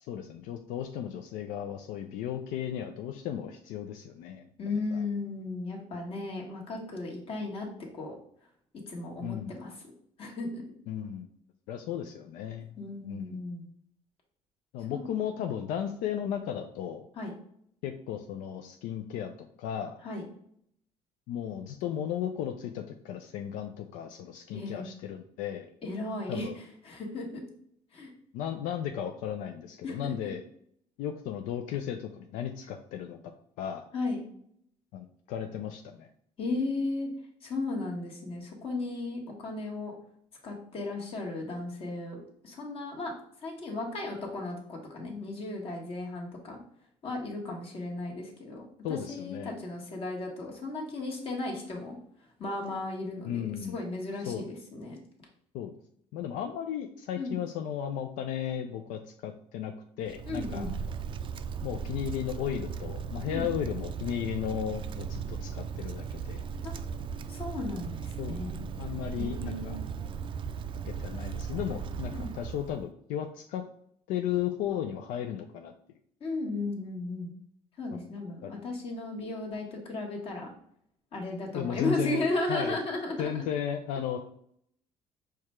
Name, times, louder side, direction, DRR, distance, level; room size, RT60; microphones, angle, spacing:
voice 1, 0.1-4.4 4.9-5.0 9.2-9.5 10.9-11.3 11.7-12.8 13.0-13.4 14.7-17.1 17.8-19.3 19.6-19.9 21.3-25.7 26.3-26.5 28.3-30.4 31.0-33.2 33.6-33.9 34.9-36.1 48.8-49.5 53.2-53.8 54.3-54.4 55.5-55.7 56.1-60.7 61.6-66.4 68.2-68.4 68.8-69.8 70.8-73.6 74.1-75.7 78.4-78.5 81.5-82.2 82.5-82.8 83.2-84.2, left 9 dB, 85° left, 5 dB, 0.4 m, -35 dB
voice 2, 4.6-8.1 8.9-9.7 10.2-10.6 12.8-13.7 14.9-15.1 17.2-17.3 20.0-20.3 24.5-24.9 25.8-27.4 27.9-28.1 29.8-30.3 33.9-34.2 36.4-37.1 37.4-39.9 40.4-43.1 43.4-46.6 47.0-52.0 52.4-55.0 57.2-57.4 60.2-60.7 63.3-63.5 66.6-66.7 67.3-68.7 69.2-69.9 72.1-72.3 76.2-77.3 77.8-80.5 81.1-83.4, left 2 dB, 45° left, -1 dB, 1.5 m, -35 dB
Wind, 60.0-72.9, right 6 dB, 40° right, 0.3 m, -37 dB
4.7 x 2.3 x 4.3 m, 0.68 s
cardioid pair, 105°, 13 cm